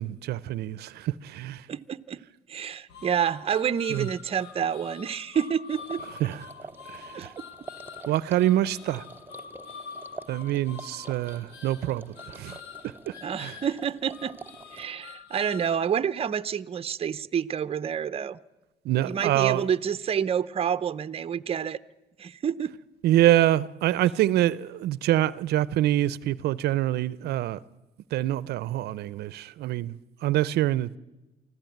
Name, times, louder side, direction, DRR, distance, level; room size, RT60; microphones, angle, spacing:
voice 1, 0.0-1.7 3.9-4.1 6.2-6.5 6.9-7.3 8.1-9.1 10.3-13.6 18.8-19.7 23.0-27.6 28.1-30.9, right 13 dB, 75° right, 0.7 m, -26 dB
voice 2, 1.7-2.2 2.5-6.0 7.1-7.4 13.2-14.4 14.7-18.4 19.0-21.8 22.2-22.7, right 8 dB, 35° right, 0.8 m, -28 dB
sound 1, 2.9-15.9, left 6 dB, 80° left, 2.1 m, -46 dB
sound 2, 5.7-14.9, right 3 dB, 10° right, 0.9 m, -47 dB
24.5 x 15.0 x 9.3 m
cardioid pair, 110°, 17 cm